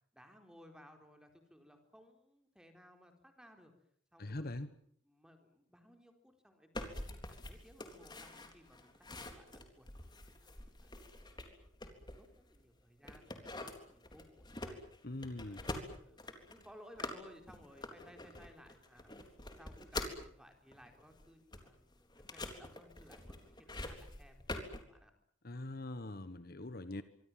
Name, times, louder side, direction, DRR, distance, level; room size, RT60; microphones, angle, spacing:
voice 1, 0.1-3.7 4.1-4.5 5.0-9.9 10.4-10.9 11.3-14.8 15.2-15.7 16.0-24.4 24.6-25.1, equal, 5° right, 5 dB, 4.4 m, -60 dB
voice 2, 4.2-4.7 15.0-15.6 25.4-27.0, left 2 dB, 50° left, 12 dB, 1.2 m, -42 dB
sound 1, 6.7-12.6 13.0-20.3 20.7-24.8, left 2 dB, 20° left, 3.7 m, -46 dB
25.5 x 25.0 x 7.6 m, 0.63 s
head